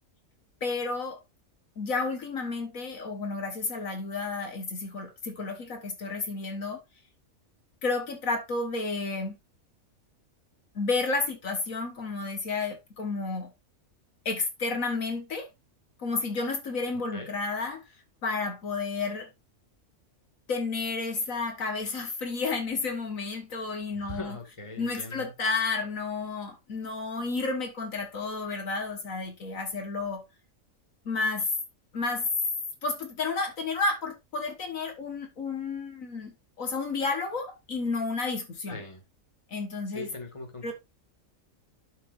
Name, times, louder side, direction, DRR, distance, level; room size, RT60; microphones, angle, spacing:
voice 1, 0.6-1.2 1.8-6.8 7.8-9.4 10.8-13.5 14.3-15.5 16.0-17.8 18.2-19.3 20.5-24.4 24.8-30.2 31.1-31.5 31.9-32.3 32.8-38.8 39.5-40.1 40.6-40.7, left 3 dB, 70° left, 1.9 m, -31 dB
voice 2, 23.9-25.3 38.7-39.0 39.9-40.7, left 2 dB, 20° left, 2.1 m, -40 dB
11.5 x 6.0 x 2.5 m
omnidirectional pair, 1.5 m